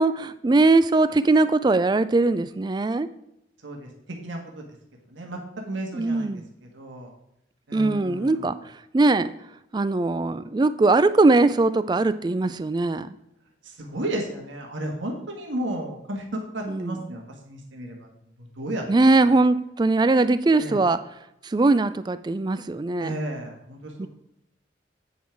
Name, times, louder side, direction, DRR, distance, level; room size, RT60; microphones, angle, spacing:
voice 1, 0.0-3.1 5.9-6.4 7.7-9.3 9.7-13.1 16.7-17.0 18.9-21.0 21.4-23.1 24.0-24.1, right 2 dB, 20° right, 14 dB, 0.3 m, -21 dB
voice 2, 4.2-4.6 5.1-7.1 7.7-8.5 13.6-18.1 18.4-18.8 20.6-20.8 23.0-24.1, right 1 dB, 85° right, 1 dB, 1.6 m, -33 dB
8.4 x 5.5 x 4.5 m, 0.83 s
head